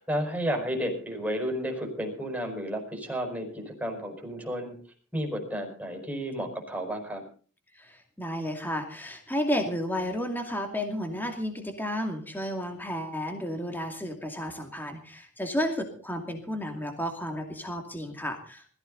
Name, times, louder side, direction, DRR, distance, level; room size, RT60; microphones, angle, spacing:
voice 1, 0.0-4.8 5.1-7.2, equal, 5° right, 2 dB, 5.0 m, -32 dB
voice 2, 7.7-18.7, equal, 10° left, 4 dB, 2.4 m, -32 dB
21.0 x 15.0 x 4.0 m, 0.40 s
head